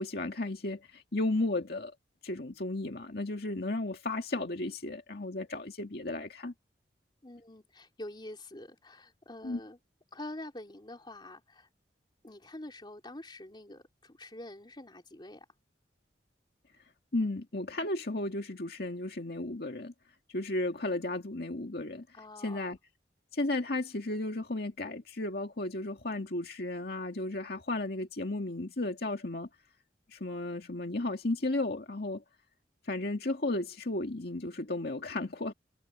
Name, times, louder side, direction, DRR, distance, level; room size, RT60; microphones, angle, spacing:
voice 1, 0.0-1.9 2.2-6.5 9.4-9.6 17.1-19.9 20.3-22.1 22.4-22.8 23.3-29.5 30.1-32.2 32.9-35.5, left 2 dB, 60° left, 2.0 m, -34 dB
voice 2, 7.2-9.8 10.1-11.7 12.2-15.4 22.1-22.8, left 1 dB, 25° left, 3.4 m, -46 dB
head